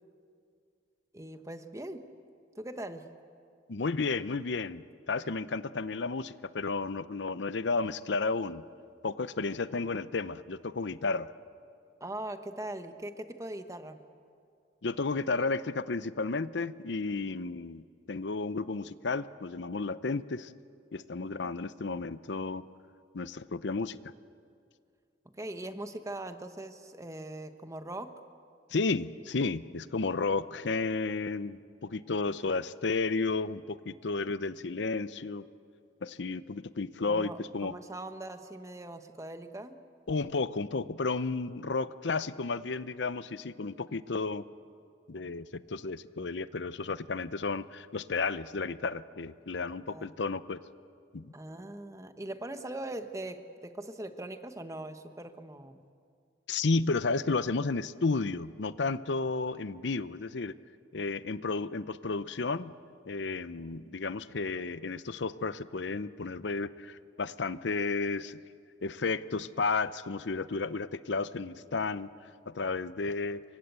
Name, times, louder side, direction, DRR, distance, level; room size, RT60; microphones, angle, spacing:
voice 1, 1.1-2.0 2.5-3.1 9.7-9.9 12.0-14.0 21.3-21.5 21.9-22.0 25.3-28.1 37.1-39.8 49.9-50.1 51.3-55.8, right 1 dB, 20° right, 8 dB, 1.3 m, -41 dB
voice 2, 3.7-8.6 9.0-11.3 14.8-20.5 20.9-22.6 23.1-24.0 28.7-35.4 36.0-37.7 40.1-44.4 45.1-50.6 51.1-51.3 56.5-60.5 60.9-62.7 63.1-68.4 68.8-72.1 72.5-73.4, left 3 dB, 80° left, 15 dB, 0.7 m, -32 dB
29.0 x 24.0 x 8.2 m, 2.3 s
head